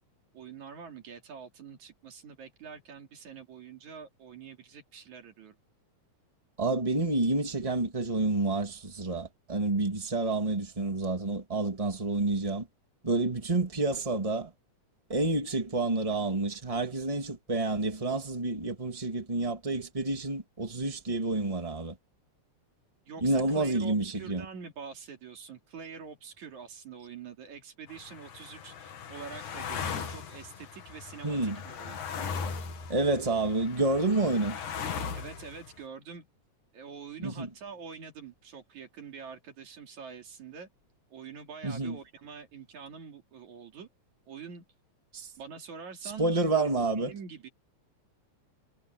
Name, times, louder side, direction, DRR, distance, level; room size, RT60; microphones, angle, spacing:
voice 1, 0.3-5.6 23.1-32.0 35.1-36.3 36.7-40.7 41.1-43.9 44.3-44.6 45.4-46.7 46.9-47.5, right 6 dB, 75° right, 4.2 m, -45 dB
voice 2, 6.6-12.7 13.0-14.5 15.1-22.0 23.2-24.4 31.2-31.6 32.9-34.6 37.2-37.5 41.6-42.0 45.1-45.3 46.2-47.1, right 2 dB, 10° right, 2.6 m, -29 dB
sound 1, 27.9-35.8, left 6 dB, 90° left, 3.7 m, -38 dB
omnidirectional pair, 3.4 m